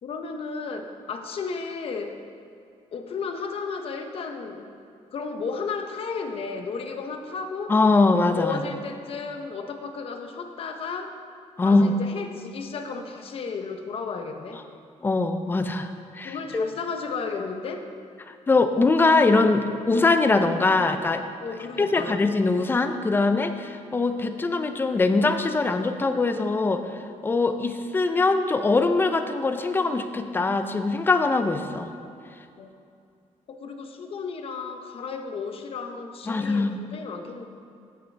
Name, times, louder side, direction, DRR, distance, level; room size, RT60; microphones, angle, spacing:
voice 1, 0.0-2.2 2.9-4.7 5.1-7.7 8.3-11.1 11.6-14.6 16.2-17.9 21.4-22.2 32.6-32.7 33.5-37.5, left 5 dB, 50° left, 5 dB, 0.8 m, -33 dB
voice 2, 7.7-8.6 11.6-11.9 15.0-16.6 18.5-21.2 21.8-26.8 27.2-31.9 36.3-36.8, left 3 dB, 15° left, 8 dB, 0.5 m, -22 dB
15.0 x 6.6 x 3.3 m, 2.4 s
cardioid pair, 160°, 13 cm